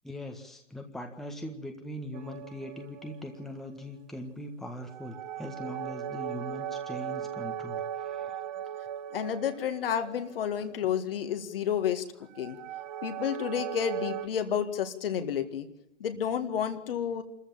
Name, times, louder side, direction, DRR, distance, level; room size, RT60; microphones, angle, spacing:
voice 1, 0.0-8.4, left 1 dB, ahead, 3 dB, 1.6 m, -41 dB
sound 1, 2.1-3.9 4.8-10.9 12.3-14.3, right 9 dB, 35° right, 1.2 m, -38 dB
voice 2, 9.1-12.0 12.4-12.6 13.0-15.7 16.0-17.2, left 8 dB, 50° left, 7 dB, 2.1 m, -30 dB
27.5 x 14.0 x 7.3 m, 0.82 s
figure-of-eight pair, 130°, 37 cm